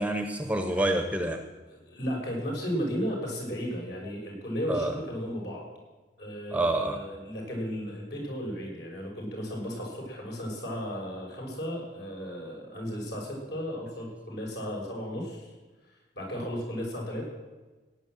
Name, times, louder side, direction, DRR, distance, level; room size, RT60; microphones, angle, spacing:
voice 1, 0.0-1.4 4.7-4.9 6.5-7.0, right 1 dB, 5° right, 6 dB, 0.9 m, -27 dB
voice 2, 1.7-5.6 6.2-15.5 16.1-17.3, equal, 60° left, -1 dB, 5.8 m, -34 dB
16.5 x 9.4 x 7.7 m, 1.2 s
head